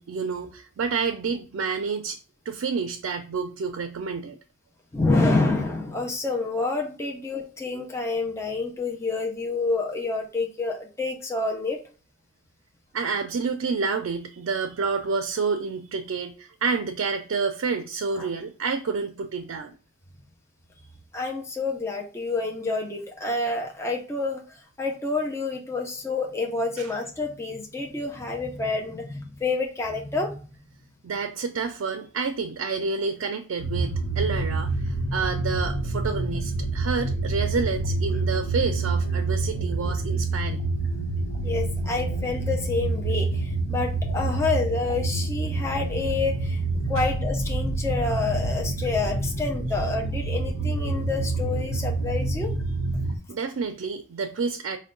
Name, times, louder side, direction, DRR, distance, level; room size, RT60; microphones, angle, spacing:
voice 1, 0.0-2.2 2.5-4.4 12.9-19.7 26.8-26.9 31.0-40.6 47.0-47.1 53.3-54.8, right 5 dB, 85° right, 0.4 m, -29 dB
voice 2, 4.9-11.8 18.2-18.3 21.1-24.4 24.8-30.4 41.4-46.6 46.9-52.5, left 3 dB, 15° left, 0.5 m, -28 dB
sound 1, 33.6-53.2, right 2 dB, 90° left, 0.9 m, -27 dB
4.3 x 2.2 x 3.7 m
head